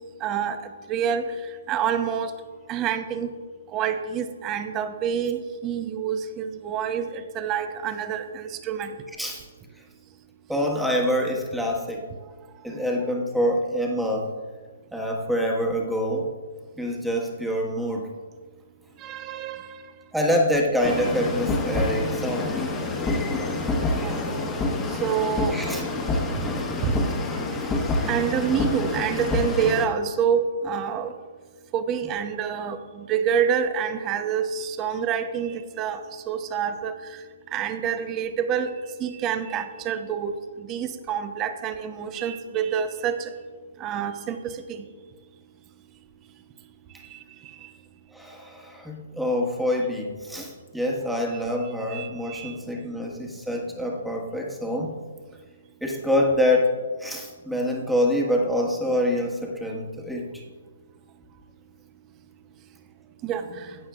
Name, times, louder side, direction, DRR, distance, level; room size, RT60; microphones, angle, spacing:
voice 1, 0.2-0.6 0.9-1.2 1.7-2.3 2.7-3.3 3.7-8.9 19.0-19.6 24.0-24.1 25.0-25.5 26.8-26.9 28.1-31.1 31.7-32.8 33.1-36.0 36.3-36.9 37.5-38.7 39.0-40.3 40.7-43.1 43.8-44.5 51.9-52.5 63.2-63.4, right 8 dB, 25° right, 9 dB, 0.8 m, -27 dB
voice 2, 10.5-12.1 12.6-14.3 14.9-16.3 16.8-18.1 20.1-22.7 25.5-25.8 27.5-27.7 48.1-55.0 55.8-60.4, left 1 dB, ahead, -1 dB, 1.6 m, -26 dB
sound 1, 20.8-29.8, left 2 dB, 15° left, 1.3 m, -27 dB
15.5 x 8.8 x 2.5 m, 1.5 s
hypercardioid pair, 140°, 0 cm